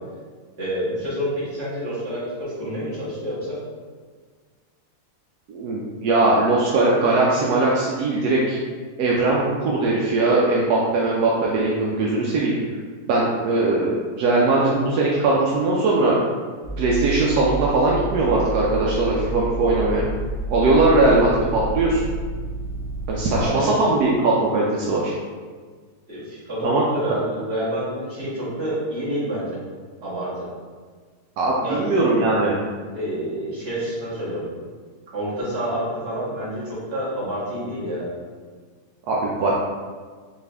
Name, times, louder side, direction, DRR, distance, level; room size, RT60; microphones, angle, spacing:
voice 1, 0.6-3.6 23.3-23.8 26.1-29.5 30.0-30.3 31.6-31.9 32.9-34.4 35.1-38.1, equal, 40° right, -9 dB, 1.6 m, -28 dB
voice 2, 5.5-8.6 9.0-12.5 13.1-16.2 16.8-20.1 20.5-22.0 23.1-25.1 26.6-26.8 31.4-32.6 39.1-39.5, right 2 dB, 75° right, -4 dB, 1.1 m, -20 dB
sound 1, 16.6-23.5, right 2 dB, 10° right, 0.8 m, -29 dB
4.6 x 2.6 x 3.3 m, 1.5 s
omnidirectional pair, 1.7 m